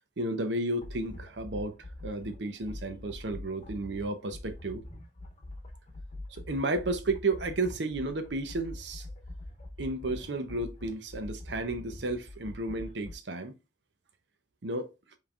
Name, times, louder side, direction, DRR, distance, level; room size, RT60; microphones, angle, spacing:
voice 1, 0.2-1.7 2.0-4.8 6.3-9.0 9.8-13.5 14.6-14.9, right 2 dB, 80° right, 0.7 m, -32 dB
sound 1, 0.8-13.1, left 1 dB, 40° left, 0.9 m, -44 dB
5.4 x 3.3 x 2.4 m
head